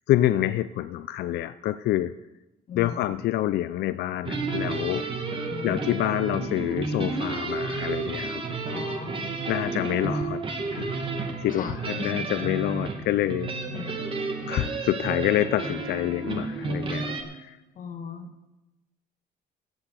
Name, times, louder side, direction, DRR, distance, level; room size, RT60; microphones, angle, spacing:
voice 1, 0.1-2.1 2.7-5.1 5.6-8.4 9.5-13.5 14.5-17.6, left 14 dB, 70° left, 14 dB, 0.5 m, -27 dB
voice 2, 2.7-3.0 5.5-5.8 8.7-9.3 11.5-11.8 13.7-13.9 17.8-18.5, left 6 dB, 55° left, 7 dB, 1.7 m, -38 dB
sound 1, 4.2-17.2, right 3 dB, 30° right, 2.3 m, -31 dB
16.0 x 7.6 x 7.7 m, 1.0 s
cardioid pair, 110°, 17 cm